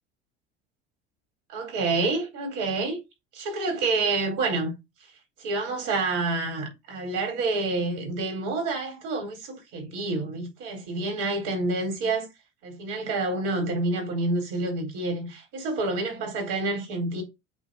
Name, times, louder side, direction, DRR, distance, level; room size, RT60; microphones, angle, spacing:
voice 1, 1.5-3.0 3.3-4.8 5.4-12.3 12.6-17.2, right 3 dB, 60° right, 4.4 m, -28 dB
8.1 x 3.3 x 4.9 m
hypercardioid pair, 75°, 33 cm